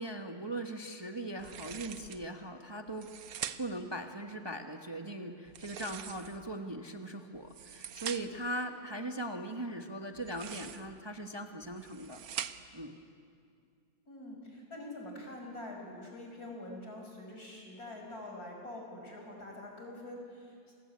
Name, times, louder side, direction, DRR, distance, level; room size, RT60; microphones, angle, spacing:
voice 1, 0.0-3.1 3.6-12.2 12.7-13.0, right 1 dB, 20° right, 4 dB, 1.2 m, -40 dB
sound 1, 1.4-2.3 2.9-3.9 5.5-6.5 7.3-8.5 10.1-11.0 11.6-12.8, right 9 dB, 70° right, 1.3 m, -43 dB
voice 2, 14.1-20.6, left 1 dB, 70° left, 1 dB, 6.0 m, -45 dB
28.0 x 21.0 x 9.5 m, 2.3 s
omnidirectional pair, 1.7 m